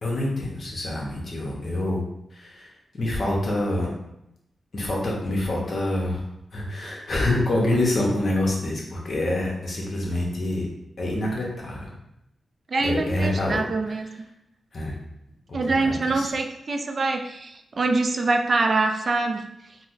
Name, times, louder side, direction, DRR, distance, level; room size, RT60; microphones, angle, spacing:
voice 1, 0.0-2.0 2.3-2.7 2.9-3.9 4.7-6.2 6.5-10.7 11.0-11.9 12.8-13.9 14.7-14.9 15.5-16.3, left 1 dB, 55° left, -2 dB, 0.9 m, -26 dB
voice 2, 12.7-14.1 15.5-19.4, right 3 dB, 55° right, 4 dB, 0.3 m, -24 dB
4.1 x 2.0 x 2.5 m, 0.84 s
cardioid pair, 65°, 0 cm